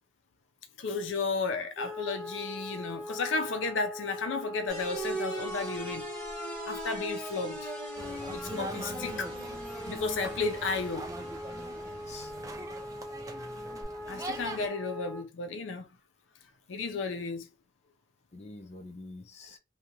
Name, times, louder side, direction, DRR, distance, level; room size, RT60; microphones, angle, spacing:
voice 1, 0.8-6.1 6.7-7.7 8.3-9.3 9.9-11.1 13.0-13.2 14.1-15.9 16.7-17.5, left 4 dB, 90° left, 0.5 m, -33 dB
Wind instrument woodwind instrument, 1.8-15.3, left 1 dB, 35° right, 1.0 m, -41 dB
sound 1, 4.7-13.8, right 2 dB, 5° left, 1.1 m, -42 dB
sound 2, 8.0-14.7, right 2 dB, 20° right, 0.3 m, -42 dB
voice 2, 8.5-9.2 12.1-12.3 18.3-19.6, left 2 dB, 35° left, 0.5 m, -45 dB
2.8 x 2.2 x 2.9 m
head